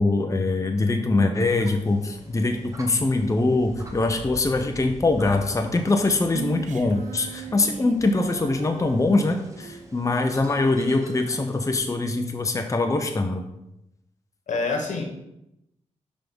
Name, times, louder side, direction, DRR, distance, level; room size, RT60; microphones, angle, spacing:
voice 1, 0.0-13.5, left 2 dB, 25° left, 5 dB, 0.7 m, -23 dB
sound 1, 1.3-11.8, right 1 dB, 25° right, 1.2 m, -44 dB
Female singing, 6.3-9.8, right 7 dB, 80° right, 0.4 m, -39 dB
voice 2, 14.5-15.0, left 3 dB, 75° left, 2 dB, 1.3 m, -27 dB
5.6 x 3.7 x 5.3 m, 0.85 s
cardioid pair, 50°, 13 cm